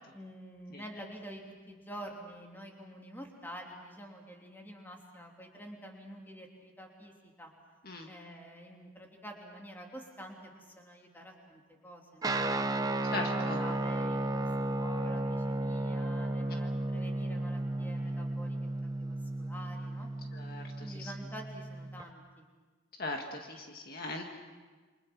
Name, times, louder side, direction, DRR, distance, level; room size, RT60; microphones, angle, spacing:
voice 1, 0.1-7.5 8.1-12.7 13.1-18.6 19.0-20.1 20.8-22.5, equal, 10° left, 0 dB, 3.2 m, -48 dB
Guitar, 12.2-22.0, right 2 dB, 20° right, 0.8 m, -34 dB
voice 2, 13.1-13.6 20.3-21.1 23.0-24.2, left 2 dB, 45° left, 2 dB, 1.8 m, -39 dB
29.0 x 25.0 x 6.1 m, 1.4 s
head